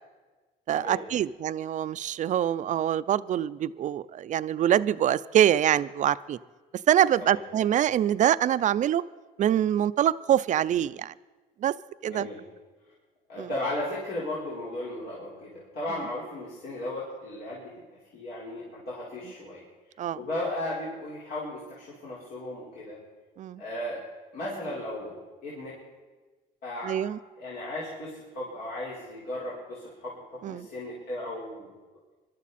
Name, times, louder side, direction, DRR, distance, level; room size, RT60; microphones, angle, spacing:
voice 1, 0.7-6.4 6.9-9.0 9.4-11.1 11.6-11.7 12.0-12.3 13.4-13.5 20.0-20.2 23.4-23.6 26.8-27.2 30.4-30.7, right 10 dB, 45° right, 16 dB, 0.5 m, -24 dB
voice 2, 12.0-12.4 13.3-17.7 18.1-19.6 20.2-23.0 23.6-24.0 24.3-25.7 26.6-27.0 27.4-31.7, left 1 dB, 70° left, -7 dB, 4.4 m, -35 dB
22.0 x 12.5 x 4.2 m, 1.3 s
cardioid pair, 110°, 17 cm